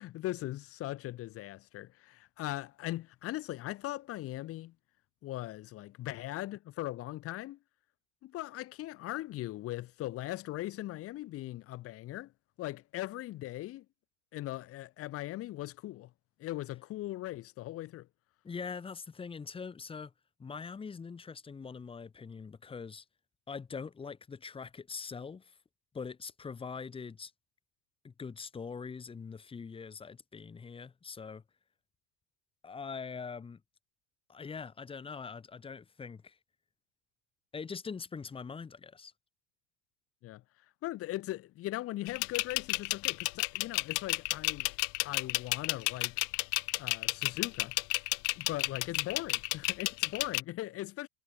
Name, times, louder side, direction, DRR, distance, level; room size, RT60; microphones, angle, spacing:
voice 1, 0.0-4.7 5.2-7.6 8.2-12.3 12.6-13.8 14.3-16.1 16.4-18.1 40.2-40.4 40.8-44.7 45.0-46.2 46.8-47.7 48.4-51.1, left 16 dB, 40° left, 2.7 m, -39 dB
voice 2, 18.4-20.1 20.4-23.0 23.5-25.5 25.9-27.3 28.0-31.4 32.6-33.6 34.3-36.4 37.5-39.1, left 5 dB, 15° left, 3.2 m, -43 dB
sound 1, 42.1-50.4, left 37 dB, 60° left, 1.9 m, -31 dB
cardioid pair, 160°, 36 cm